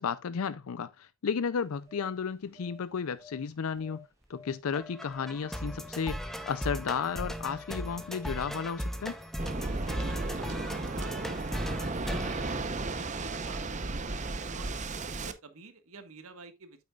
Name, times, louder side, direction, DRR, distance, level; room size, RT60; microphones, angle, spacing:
voice 1, 0.0-9.2, left 6 dB, 90° left, 0.5 m, -33 dB
sound 1, 1.5-9.7 10.0-10.2, left 5 dB, 15° right, 2.9 m, -52 dB
sound 2, 4.7-13.3, equal, ahead, 0.8 m, -38 dB
Waves surf, 9.4-15.3, right 3 dB, 35° right, 0.8 m, -34 dB
voice 2, 9.7-14.8 15.1-16.8, right 3 dB, 85° right, 1.5 m, -51 dB
8.8 x 8.6 x 2.4 m
head